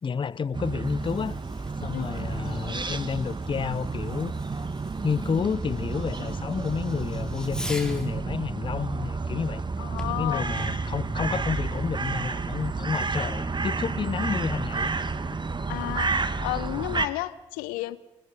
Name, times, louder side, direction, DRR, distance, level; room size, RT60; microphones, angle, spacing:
voice 1, 0.0-1.4 1.8-4.7 5.0-9.6 10.0-14.9, left 6 dB, 35° left, 0.6 m, -30 dB
Fireworks, 0.5-8.2 10.0-11.0, left 1 dB, 5° left, 3.8 m, -45 dB
sound 1, 0.5-17.1, right 4 dB, 30° right, 1.6 m, -30 dB
voice 2, 9.8-10.5 15.7-18.0, left 18 dB, 75° left, 0.8 m, -32 dB
28.5 x 19.5 x 5.5 m
hypercardioid pair, 45°, 15 cm